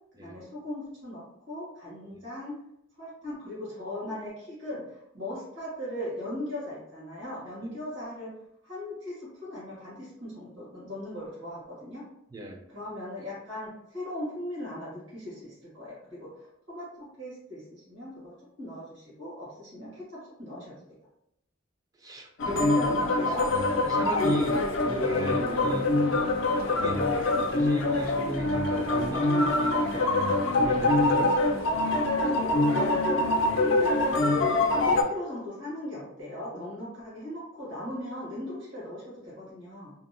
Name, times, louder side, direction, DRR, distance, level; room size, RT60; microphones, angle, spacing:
voice 1, 0.2-2.6 3.0-12.1 12.7-21.1 22.4-23.5 26.7-27.0 32.3-39.9, left 1 dB, 75° right, -8 dB, 1.2 m, -39 dB
voice 2, 12.3-12.6 22.0-23.0 23.8-26.0 26.6-31.3, right 1 dB, 20° right, 1 dB, 0.3 m, -36 dB
sound 1, 22.4-35.0, left 2 dB, 75° left, 0.4 m, -24 dB
2.7 x 2.0 x 2.5 m, 0.77 s
head